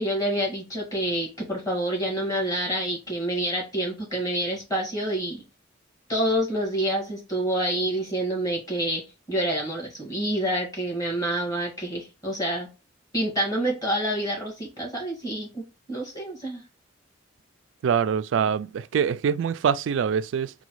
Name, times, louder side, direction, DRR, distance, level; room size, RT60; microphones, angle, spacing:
voice 1, 0.0-5.4 6.1-9.0 9.3-12.7 13.1-16.6, right 1 dB, 20° left, 1.8 m, -27 dB
voice 2, 17.8-20.5, right 7 dB, 75° right, 0.3 m, -24 dB
4.0 x 2.3 x 4.6 m
head